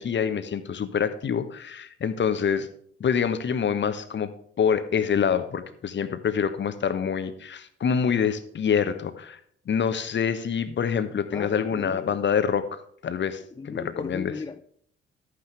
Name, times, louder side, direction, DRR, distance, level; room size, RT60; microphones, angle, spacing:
voice 1, 0.0-2.7 3.0-4.3 4.6-9.4 9.7-14.3, left 7 dB, 40° left, 1.1 m, -26 dB
voice 2, 11.3-12.2 13.6-14.6, left 4 dB, 15° left, 0.4 m, -36 dB
13.0 x 9.5 x 3.3 m
figure-of-eight pair, 40°, 29 cm